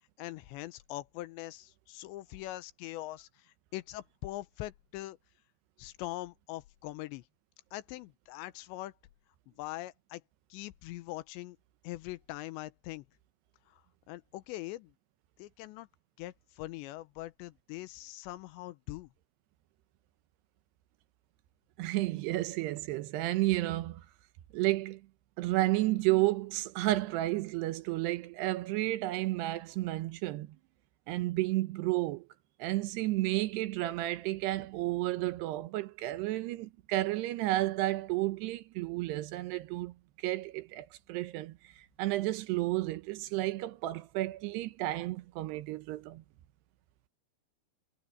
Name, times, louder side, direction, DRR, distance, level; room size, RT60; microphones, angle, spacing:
voice 1, 0.2-5.2 5.8-7.2 7.7-8.9 9.5-10.2 10.5-11.6 11.8-13.1 13.7-13.8 14.1-14.9 15.4-15.9 16.2-19.1, left 17 dB, 85° left, 3.0 m, -42 dB
voice 2, 21.8-24.0 24.5-25.0 25.4-30.6 31.1-32.2 32.6-41.6 42.0-46.2, right 17 dB, 75° right, 2.7 m, -32 dB
omnidirectional pair, 5.1 m